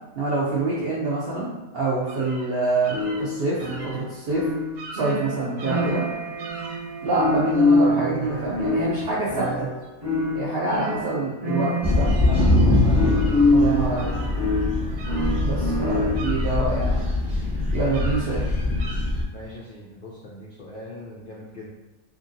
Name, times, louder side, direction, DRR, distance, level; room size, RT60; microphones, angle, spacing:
voice 1, 0.1-1.5 1.7-4.5 4.9-6.0 7.0-9.7 10.3-12.1 13.5-14.1 15.4-17.1 17.7-18.6, right 3 dB, 70° right, -7 dB, 0.5 m, -26 dB
sound 1, 2.1-2.5 2.8-4.0 4.4-4.5 4.8-5.2 5.6-6.1 6.4-6.8 9.4-9.5 9.8-9.9 10.6-10.9 11.6-12.8 13.2-13.6 14.0-15.6 15.9-17.2 17.6-18.3 18.8-18.9, right 2 dB, 85° right, 1.2 m, -41 dB
sound 2, 2.9-16.4, left 2 dB, 35° right, 1.0 m, -25 dB
sound 3, 11.8-19.2, left 2 dB, 5° right, 0.8 m, -23 dB
voice 2, 12.3-13.4 19.3-21.7, left 1 dB, 75° left, -5 dB, 0.4 m, -40 dB
2.8 x 2.5 x 2.6 m, 1.0 s
omnidirectional pair, 1.6 m